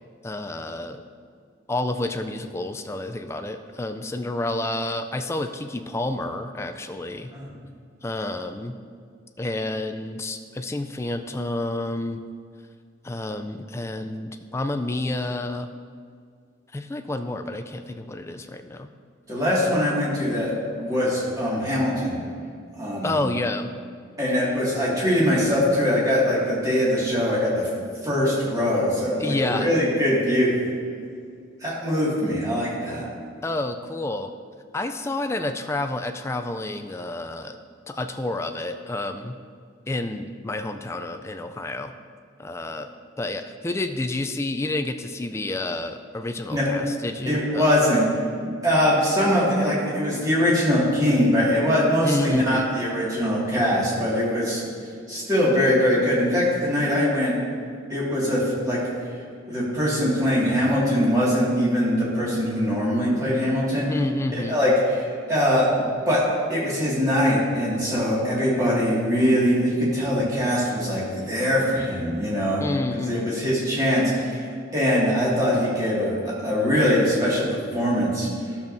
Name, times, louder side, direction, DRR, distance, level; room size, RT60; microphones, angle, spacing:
voice 1, 0.2-1.0 1.7-7.3 8.0-8.8 9.4-12.2 13.0-15.7 16.7-18.9 23.0-23.7 29.2-29.7 33.4-34.3 34.7-37.6 37.9-39.4 39.9-41.9 42.4-47.7 52.0-52.7 63.9-64.6 72.6-73.4, left 2 dB, 15° left, 7 dB, 0.3 m, -29 dB
voice 2, 19.3-20.5 20.8-22.2 22.7-23.2 24.2-27.7 28.0-30.5 31.6-33.1 46.5-46.7 47.3-48.0 48.4-54.6 55.1-57.4 57.9-58.8 59.5-63.9 64.3-66.2 66.5-72.6 72.9-74.5 74.7-78.3, equal, 20° right, -7 dB, 2.0 m, -22 dB
12.5 x 7.1 x 2.7 m, 2.2 s
head